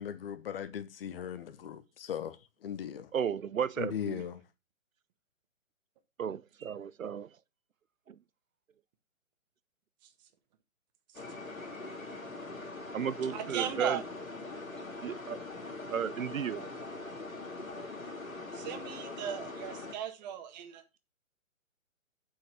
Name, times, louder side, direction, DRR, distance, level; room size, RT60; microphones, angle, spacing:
voice 1, 0.0-2.4 2.6-3.1 3.8-4.3, left 9 dB, 45° left, 1.1 m, -38 dB
voice 2, 3.1-4.2 6.2-7.3 8.1-8.2 12.9-14.0 15.0-15.4 15.9-16.7, right 8 dB, 80° right, 0.7 m, -34 dB
sound 1, 11.1-19.9, left 2 dB, 85° left, 2.8 m, -42 dB
voice 3, 13.3-14.0 18.5-21.0, right 9 dB, 35° right, 1.6 m, -37 dB
8.0 x 5.8 x 5.9 m
figure-of-eight pair, 135°, 40 cm